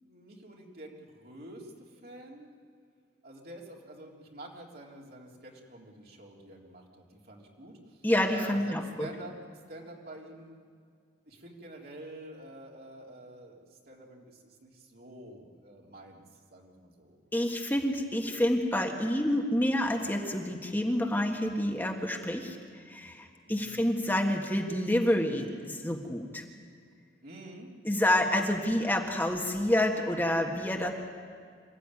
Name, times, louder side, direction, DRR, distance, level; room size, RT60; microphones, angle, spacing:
voice 1, 0.0-2.5 3.2-8.1 8.3-9.3 9.7-10.7 11.3-16.2 16.5-17.2 23.4-23.9 27.2-27.7, right 1 dB, 60° right, -2 dB, 3.6 m, -48 dB
voice 2, 8.0-9.1 17.3-22.6 22.9-26.4 27.8-30.9, left 1 dB, 10° left, 2 dB, 1.6 m, -28 dB
26.5 x 14.5 x 9.8 m, 2.2 s
head